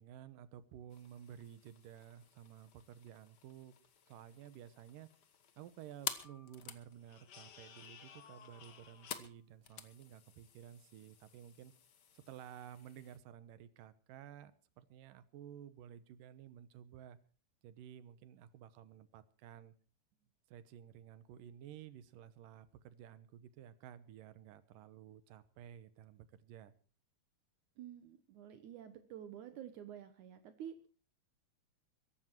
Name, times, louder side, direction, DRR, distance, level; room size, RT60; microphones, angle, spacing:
voice 1, 0.0-3.7 4.1-5.1 5.6-11.7 12.1-17.2 17.6-19.8 20.5-26.7, right 10 dB, 90° right, 14 dB, 2.7 m, -54 dB
sound 1, 0.9-13.2, left 7 dB, 60° left, 1.1 m, -51 dB
voice 2, 27.8-30.9, right 10 dB, 70° right, 9 dB, 2.4 m, -50 dB
22.5 x 11.5 x 4.5 m, 0.38 s
omnidirectional pair, 3.7 m